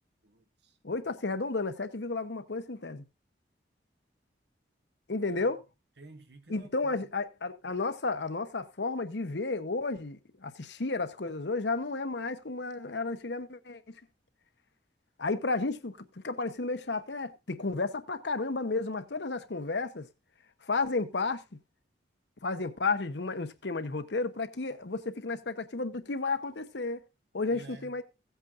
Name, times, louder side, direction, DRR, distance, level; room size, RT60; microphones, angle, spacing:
voice 1, 0.2-0.7 5.3-5.5 6.0-7.0 27.5-28.0, right 3 dB, 70° right, 1.3 m, -51 dB
voice 2, 0.8-3.0 5.1-5.6 6.5-13.8 15.2-16.0 16.2-20.1 20.6-21.4 22.4-27.0 27.3-28.0, left 3 dB, 75° left, 0.9 m, -32 dB
16.5 x 8.2 x 2.5 m
head